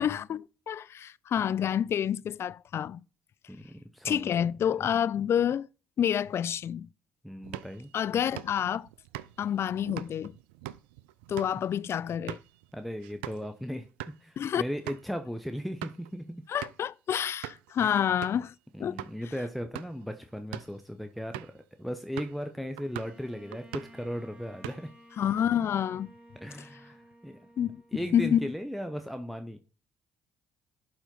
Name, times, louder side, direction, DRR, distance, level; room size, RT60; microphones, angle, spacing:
voice 1, 0.0-3.0 4.0-5.7 6.0-6.9 7.9-8.9 9.4-10.3 11.3-12.4 14.4-14.6 16.5-18.5 18.8-19.0 25.2-26.1 26.6-26.7 27.6-28.5, left 9 dB, 50° left, 0.4 m, -28 dB
voice 2, 3.5-4.3 7.2-7.9 12.7-13.9 14.2-16.4 17.8-17.9 18.7-24.9 26.4-27.4 27.9-29.6, equal, ahead, 0.9 m, -37 dB
sound 1, 7.4-13.5 13.8-14.2 14.5-14.6 14.9-15.1 15.6-16.1 16.6-16.9 17.4-17.7 18.2-18.5 19.0-19.1 19.6-20.0 20.4-20.8 21.3-21.6 22.2-22.5 22.8-23.2 23.5-24.0 24.4-25.0, right 14 dB, 80° right, 0.4 m, -42 dB
Bowed string instrument, 22.8-28.5, right 1 dB, 20° right, 2.8 m, -54 dB
11.5 x 4.5 x 3.9 m
hypercardioid pair, 50°, 6 cm